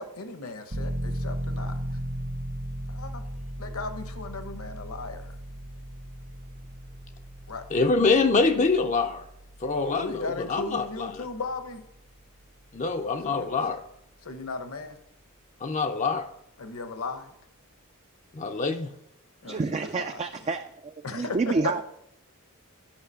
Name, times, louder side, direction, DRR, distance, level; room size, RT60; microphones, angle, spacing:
voice 1, 0.0-2.0 2.9-3.2 3.6-5.4 7.5-7.6 9.8-11.8 13.2-13.5 14.2-15.0 16.6-17.3 19.4-20.2 21.0-21.8, left 3 dB, 65° left, 9 dB, 1.0 m, -36 dB
sound 1, 0.7-13.2 13.6-13.7, equal, 65° right, 1.3 m, -37 dB
voice 2, 7.7-9.2 9.6-11.2 12.7-13.8 15.6-16.3 18.3-18.9, left 4 dB, 35° left, 6 dB, 0.5 m, -25 dB
voice 3, 19.4-21.8, right 4 dB, 30° right, 7 dB, 0.3 m, -29 dB
10.5 x 5.8 x 5.6 m, 0.77 s
head